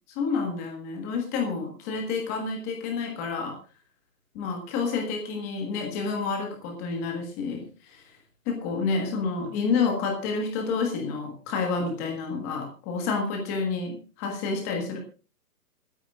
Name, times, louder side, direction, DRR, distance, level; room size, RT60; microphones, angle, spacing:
voice 1, 0.1-3.6 4.3-8.1 8.4-15.0, left 4 dB, 10° left, 2 dB, 1.4 m, -29 dB
26.0 x 9.8 x 2.4 m, 0.34 s
hypercardioid pair, 180°, 47 cm